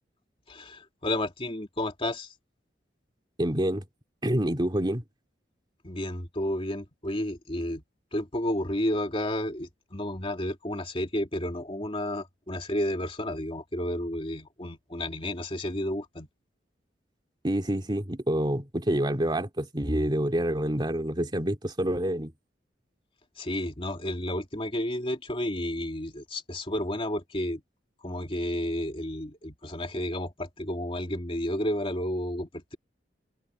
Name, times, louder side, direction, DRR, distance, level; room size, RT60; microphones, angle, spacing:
voice 1, 0.5-2.3 5.8-7.8 8.1-16.3 23.4-27.6 28.0-32.8, left 1 dB, 30° left, 2.6 m, -31 dB
voice 2, 3.4-3.9 4.2-5.0 17.4-22.3, right 1 dB, 25° right, 2.7 m, -27 dB
head